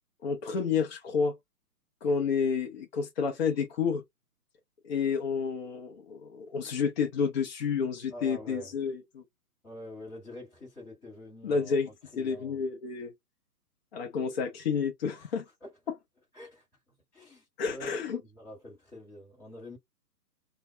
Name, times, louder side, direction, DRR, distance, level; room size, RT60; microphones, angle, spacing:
voice 1, 0.2-1.3 2.0-4.0 4.8-9.2 11.4-11.9 12.2-13.1 13.9-15.4 17.6-18.2, left 6 dB, 40° left, 0.6 m, -30 dB
voice 2, 8.1-8.7 9.6-12.6 15.2-15.3 15.6-15.7 16.3-16.6 17.1-17.9 18.2-19.8, left 1 dB, 5° left, 1.0 m, -46 dB
2.2 x 2.1 x 3.1 m
hypercardioid pair, 140°, 47 cm